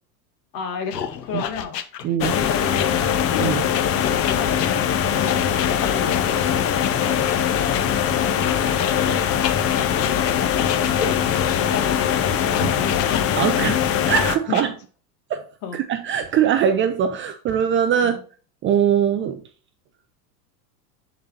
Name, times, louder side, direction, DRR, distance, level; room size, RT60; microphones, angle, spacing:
voice 1, 0.5-3.1 3.8-6.4 7.0-7.3 10.1-10.4 10.8-11.2 11.6-12.0 12.2-13.8 14.5-14.6 15.6-15.8 18.0-18.2, left 6 dB, 45° left, 2.1 m, -33 dB
sound 1, 0.9-7.8 8.4-13.6 14.1-14.6, left 9 dB, 80° left, 1.0 m, -31 dB
voice 2, 2.0-2.4 3.4-3.7 8.5-8.9 12.6-12.7 13.4-13.8 14.1-14.7 15.3-15.4 15.7-18.2 18.6-19.4, right 8 dB, 25° right, 0.5 m, -21 dB
sound 2, 2.2-14.4, left 9 dB, 30° left, 0.7 m, -21 dB
11.0 x 4.0 x 2.7 m
hypercardioid pair, 100°, 49 cm